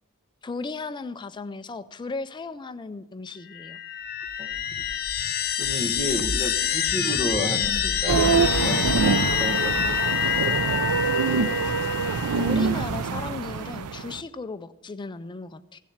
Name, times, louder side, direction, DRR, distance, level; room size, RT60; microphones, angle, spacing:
voice 1, 0.4-3.8 12.3-15.8, left 3 dB, 20° left, 12 dB, 0.4 m, -36 dB
sound 1, 3.5-12.8, left 8 dB, 45° left, 0.8 m, -27 dB
voice 2, 5.6-10.0 10.4-10.6, equal, 25° right, 4 dB, 1.6 m, -32 dB
sound 2, 8.1-14.2, right 5 dB, 80° right, 0.5 m, -25 dB
16.5 x 7.4 x 7.1 m, 1.0 s
head